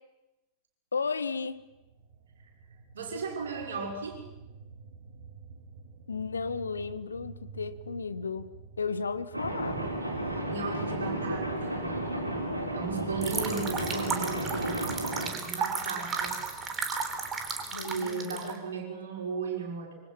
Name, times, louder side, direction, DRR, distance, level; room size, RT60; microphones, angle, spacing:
voice 1, 0.9-1.6 6.1-9.8 17.7-18.9, left 5 dB, 75° left, 1.1 m, -34 dB
sound 1, 1.6-16.9, right 5 dB, 50° right, 2.1 m, -50 dB
voice 2, 2.9-4.2 10.5-11.9 12.7-16.4 17.8-19.9, right 5 dB, 65° right, 5.6 m, -36 dB
sound 2, 9.3-15.3, right 1 dB, 85° right, 3.9 m, -33 dB
sound 3, 13.2-18.6, right 5 dB, 20° right, 3.8 m, -34 dB
26.0 x 24.5 x 5.9 m
figure-of-eight pair, 90°, 0 cm